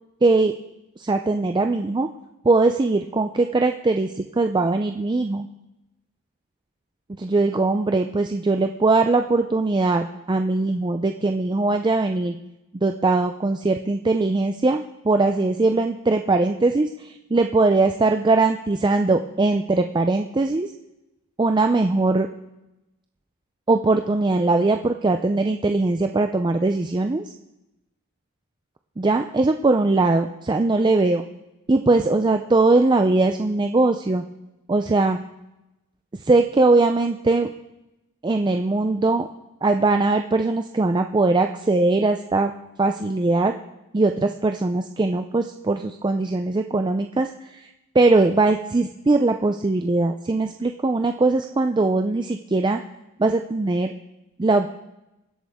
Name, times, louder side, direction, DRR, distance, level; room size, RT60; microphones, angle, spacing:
voice 1, 0.2-0.6 1.0-2.1 2.4-5.5 7.2-12.4 12.7-20.7 21.4-22.3 23.7-27.3 29.0-31.2 31.7-34.2 34.7-35.2 36.2-37.5 38.2-39.3 39.6-42.5 42.8-43.5 43.9-52.8 53.2-53.9 54.4-54.7, right 3 dB, 20° right, 6 dB, 0.4 m, -21 dB
23.0 x 8.1 x 3.6 m, 0.95 s
head